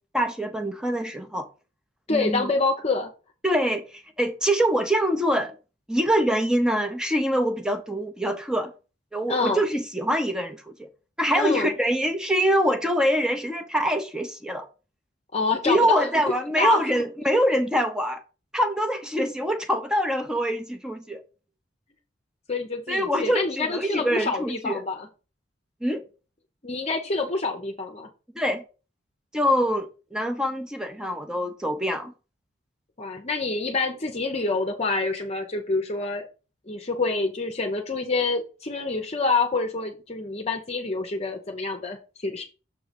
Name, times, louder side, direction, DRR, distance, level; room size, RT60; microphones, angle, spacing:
voice 1, 0.1-1.5 2.1-2.5 3.4-5.5 5.9-8.7 9.1-10.9 11.2-14.7 15.7-18.2 18.5-21.2 22.9-24.8 25.8-26.0 28.3-28.6 29.3-32.1, equal, 5° right, 0.8 m, -24 dB
voice 2, 2.1-3.1 9.3-9.6 11.3-11.7 15.3-16.1 16.6-16.8 22.5-25.1 26.6-28.1 33.0-36.3 36.7-42.4, left 3 dB, 35° left, 0.8 m, -27 dB
6.8 x 3.9 x 5.2 m
head